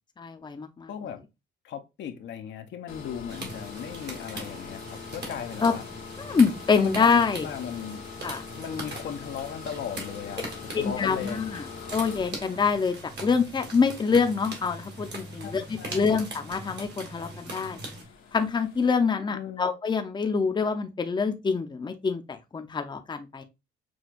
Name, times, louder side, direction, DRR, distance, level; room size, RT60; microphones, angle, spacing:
voice 1, 0.2-0.9 5.6-5.7 6.1-7.5 8.2-8.4 10.7-11.7 11.9-17.8 18.3-23.4, left 5 dB, 20° left, 0.6 m, -25 dB
voice 2, 0.9-1.2 1.6-5.8 6.8-8.0 8.6-10.4 10.7-11.4 15.4-16.2 19.3-19.7, left 8 dB, 65° left, 0.7 m, -37 dB
sound 1, 2.9-18.9, left 6 dB, 85° left, 1.1 m, -44 dB
sound 2, 3.3-18.0, right 2 dB, 60° right, 1.6 m, -41 dB
6.1 x 2.3 x 2.4 m
cardioid pair, 90°, 20 cm